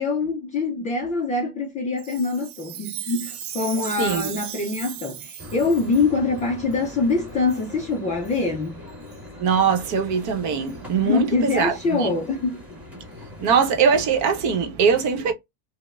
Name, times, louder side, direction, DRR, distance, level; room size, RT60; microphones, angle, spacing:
voice 1, 0.0-8.8 11.0-12.6, left 3 dB, 20° left, 0.3 m, -24 dB
Chime, 2.0-6.1 6.7-6.8 7.5-7.7 8.2-8.4 9.1-9.2 9.8-9.9 10.7-10.8, right 10 dB, 85° right, 1.0 m, -37 dB
voice 2, 4.0-4.3 9.4-12.1 13.4-15.3, right 6 dB, 45° right, 0.8 m, -21 dB
sound 1, 5.4-14.6, left 1 dB, 5° right, 1.4 m, -41 dB
5.1 x 2.1 x 2.3 m
cardioid pair, 150°, 42 cm